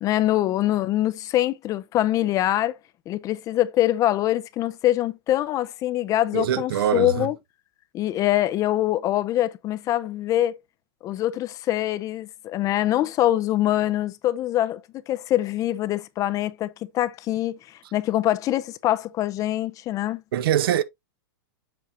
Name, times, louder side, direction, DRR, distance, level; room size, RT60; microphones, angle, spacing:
voice 1, 0.0-2.8 3.1-7.4 7.9-10.6 11.0-14.8 15.1-17.6 17.9-20.2, left 14 dB, 25° left, 0.5 m, -24 dB
voice 2, 6.3-7.3 20.3-20.8, right 10 dB, 70° right, 0.7 m, -23 dB
7.6 x 5.7 x 2.7 m
hypercardioid pair, 135°, 13 cm